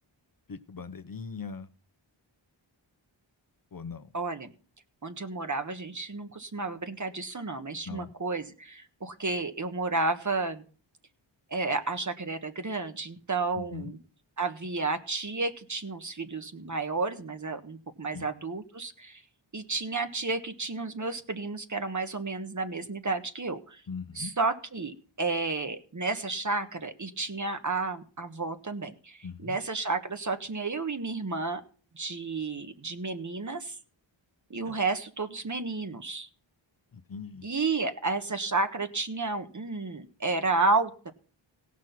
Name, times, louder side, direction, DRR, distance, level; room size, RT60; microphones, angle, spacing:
voice 1, 0.5-1.7 3.7-4.1 7.8-8.1 13.5-13.9 18.1-18.3 23.9-24.3 29.2-29.6 34.7-34.8 36.9-37.5, left 5 dB, 45° left, 10 dB, 0.9 m, -40 dB
voice 2, 4.1-4.5 5.0-10.6 11.5-14.0 14.4-19.2 19.5-23.8 24.1-31.6 31.9-33.8 34.5-36.3 37.4-41.1, right 3 dB, 40° right, 8 dB, 1.4 m, -31 dB
17.0 x 6.2 x 5.9 m, 0.41 s
wide cardioid pair, 75°, 48 cm